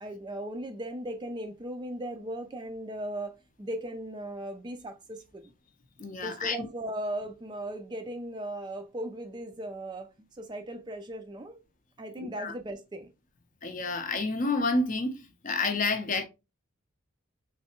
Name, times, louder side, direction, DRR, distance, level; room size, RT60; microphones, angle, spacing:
voice 1, 0.0-5.5 6.2-11.6 12.0-13.1, right 1 dB, 20° right, 0.3 m, -37 dB
voice 2, 6.0-6.7 12.2-12.5 13.6-16.2, left 3 dB, 35° left, 0.5 m, -29 dB
3.3 x 3.1 x 2.9 m
head